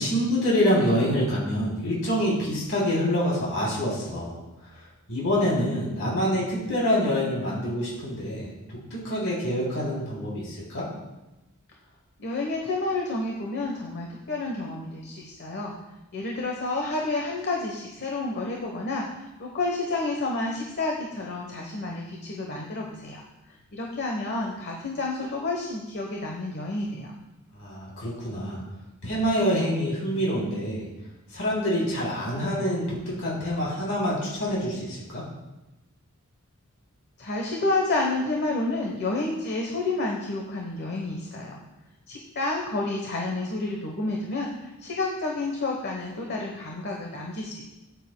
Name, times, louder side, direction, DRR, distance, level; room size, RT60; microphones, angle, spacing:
voice 1, 0.0-4.4 5.1-10.9 27.5-28.6 29.0-30.9 31.3-35.2, equal, 65° left, -5 dB, 3.2 m, -26 dB
voice 2, 12.2-15.7 16.1-23.2 23.7-27.2 37.2-41.6 42.1-47.6, left 2 dB, 50° left, 0 dB, 1.0 m, -30 dB
14.0 x 9.2 x 2.2 m, 1.0 s
head